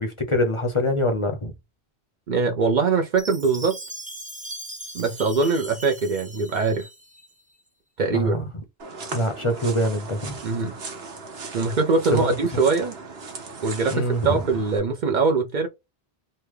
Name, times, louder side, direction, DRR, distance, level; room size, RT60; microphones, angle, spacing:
voice 1, 0.0-1.5 8.1-8.4 9.1-10.4 12.1-12.3 13.9-14.4, left 1 dB, 35° left, 0.6 m, -24 dB
voice 2, 2.3-3.8 4.9-6.9 8.0-8.4 10.4-10.8 11.5-13.0 13.6-15.7, right 4 dB, 55° right, 0.6 m, -22 dB
Chime, 3.2-7.3, right 1 dB, 10° right, 0.4 m, -39 dB
sound 1, 8.8-14.8, right 4 dB, 90° right, 1.2 m, -38 dB
3.2 x 2.2 x 3.3 m
omnidirectional pair, 1.0 m